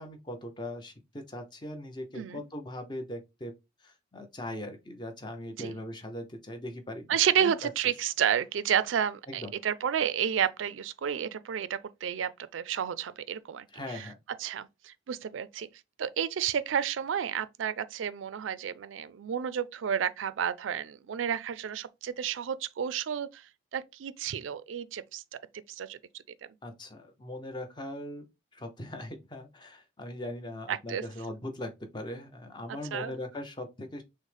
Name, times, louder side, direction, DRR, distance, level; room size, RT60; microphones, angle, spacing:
voice 1, 0.0-3.5 3.8-7.1 7.4-7.7 9.3-9.5 13.7-14.2 26.6-34.0, left 1 dB, 25° left, 0.7 m, -40 dB
voice 2, 7.1-14.1 14.4-15.7 16.0-23.4 23.7-25.2 25.7-26.0 30.7-31.0 32.9-33.1, right 8 dB, 85° right, 0.4 m, -31 dB
6.2 x 2.1 x 3.3 m
head